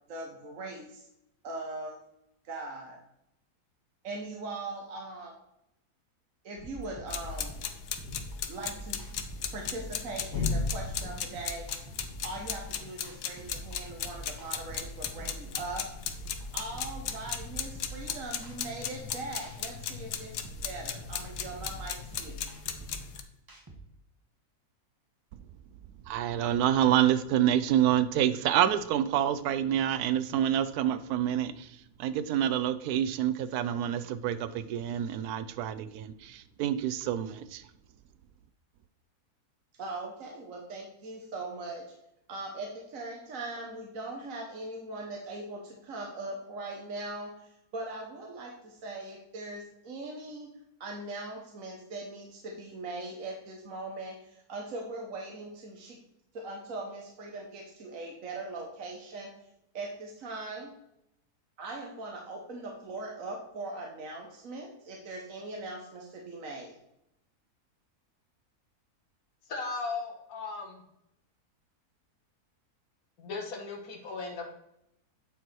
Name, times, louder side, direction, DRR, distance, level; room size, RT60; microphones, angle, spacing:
voice 1, 0.1-1.1 1.4-2.0 2.4-3.0 4.0-5.4 6.4-7.6 8.5-9.0 9.5-11.7 12.2-15.9 16.5-22.4 39.8-41.8 42.3-50.5 50.8-56.0 56.3-59.3 59.7-60.7 61.6-66.8, right 2 dB, 60° right, 0 dB, 1.5 m, -40 dB
sound 1, 6.6-23.8, right 1 dB, 15° right, 0.9 m, -46 dB
sound 2, 7.1-23.2, left 6 dB, 90° left, 1.3 m, -36 dB
voice 2, 26.1-31.7 32.0-37.6, right 10 dB, 85° right, 12 dB, 1.1 m, -27 dB
voice 3, 69.5-70.8 73.2-74.4, left 4 dB, 65° left, 0 dB, 1.8 m, -37 dB
9.0 x 4.6 x 4.4 m, 0.82 s
omnidirectional pair, 1.6 m